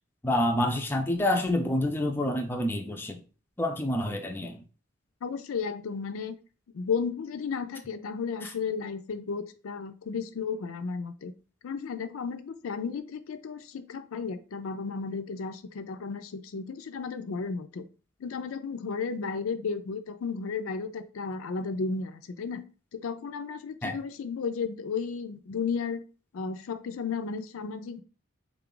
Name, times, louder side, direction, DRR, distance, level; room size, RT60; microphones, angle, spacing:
voice 1, 0.2-3.2 3.6-4.6 23.8-24.0, left 1 dB, 10° left, 0.3 m, -27 dB
voice 2, 5.2-6.4 6.7-11.3 11.6-17.8 18.2-22.6 22.9-26.0 26.3-28.0, left 5 dB, 75° left, 0.4 m, -33 dB
3.6 x 2.3 x 3.8 m
head